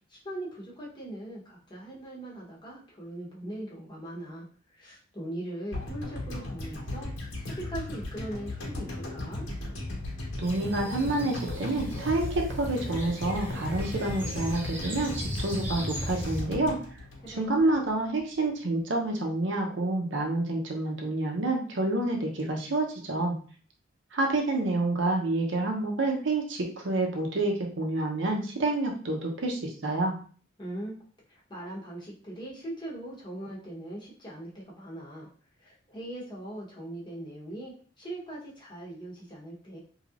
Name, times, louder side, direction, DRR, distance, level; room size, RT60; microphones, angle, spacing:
voice 1, 0.1-4.5 4.7-7.1 7.6-9.5 17.2-17.7 30.6-31.0 31.3-35.3 35.6-39.8, right 1 dB, 25° left, -5 dB, 0.9 m, -40 dB
sound 1, 5.7-17.9 18.2-18.3, left 1 dB, 85° left, 1.3 m, -36 dB
sound 2, 10.4-16.4, equal, 10° right, 0.7 m, -39 dB
voice 2, 10.4-16.8 17.4-23.4 24.1-30.2, right 2 dB, 70° right, 1 dB, 0.7 m, -28 dB
3.2 x 2.8 x 2.4 m, 0.43 s
head